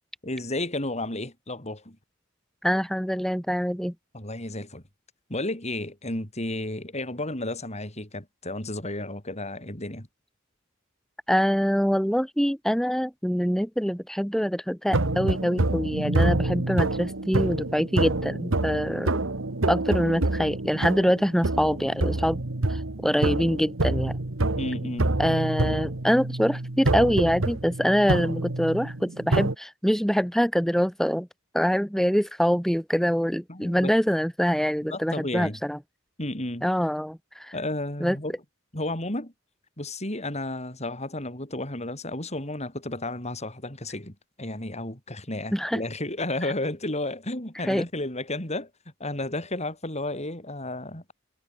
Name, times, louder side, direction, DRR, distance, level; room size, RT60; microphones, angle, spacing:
voice 1, 0.2-2.0 4.1-4.8 5.3-10.1 24.5-25.2 33.5-33.9 34.8-35.6 36.2-36.7 37.5-38.4 38.7-39.3 39.8-48.7 49.0-51.1, left 1 dB, 35° left, 7.9 m, -32 dB
voice 2, 2.6-3.9 11.3-19.2 19.7-22.4 22.7-24.2 25.2-31.3 31.5-35.8 36.6-37.5 38.0-38.2 45.5-45.8 47.6-47.8, equal, ahead, 7.1 m, -25 dB
sound 1, 14.9-29.5, right 2 dB, 80° right, 1.6 m, -27 dB
head